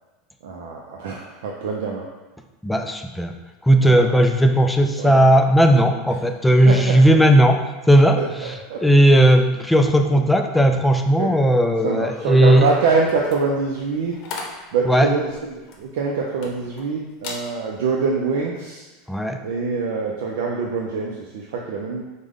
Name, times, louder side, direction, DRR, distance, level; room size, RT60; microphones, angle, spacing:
voice 1, 0.4-2.1 3.8-4.1 5.0-5.3 6.5-7.0 8.2-8.8 9.2-9.3 10.1-10.3 11.2-11.3 11.8-18.9 19.4-22.0, right 4 dB, 80° right, -1 dB, 0.4 m, -25 dB
voice 2, 2.6-3.3 3.6-7.6 7.9-8.2 8.4-8.5 8.8-12.7 14.9-15.1 19.1-19.4, right 1 dB, 5° left, 5 dB, 0.3 m, -16 dB
Content warning, 13.0-16.9 17.2-17.5 18.0-18.2, left 4 dB, 55° left, 0.7 m, -37 dB
4.9 x 2.1 x 3.5 m, 1.1 s
supercardioid pair, 130°, 0 cm